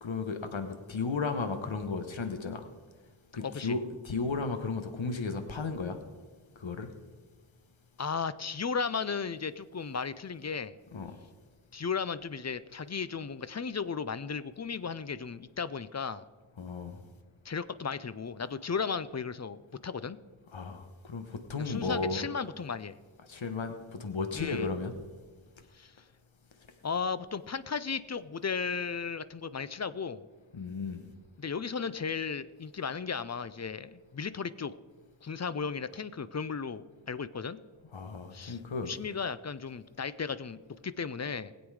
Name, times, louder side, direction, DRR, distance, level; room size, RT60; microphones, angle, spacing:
voice 1, 0.0-2.7 3.3-6.0 6.6-6.9 10.9-11.2 16.6-17.0 20.5-22.3 23.3-24.9 30.5-31.1 37.9-38.9, left 4 dB, 65° left, 8 dB, 1.2 m, -34 dB
voice 2, 3.4-3.8 8.0-10.8 11.7-16.2 17.4-20.2 21.6-23.0 24.3-24.7 25.7-25.9 26.8-30.2 31.4-34.8 35.2-37.6 38.3-38.6 38.9-41.5, left 5 dB, 35° left, 15 dB, 0.5 m, -35 dB
20.5 x 8.1 x 4.8 m, 1.5 s
wide cardioid pair, 105°, 50 cm